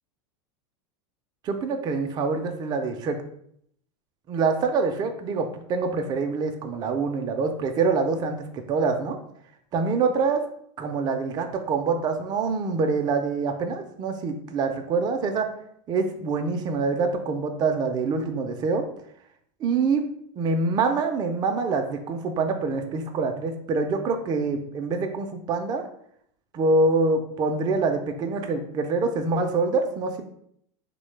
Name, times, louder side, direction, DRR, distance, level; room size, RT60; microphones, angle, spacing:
voice 1, 1.4-3.2 4.3-9.2 9.7-10.4 10.8-15.5 15.9-18.8 19.6-20.0 20.4-25.8 26.5-30.2, right 4 dB, 25° right, 5 dB, 0.4 m, -25 dB
3.1 x 2.1 x 3.0 m, 0.68 s
supercardioid pair, 120°, 16 cm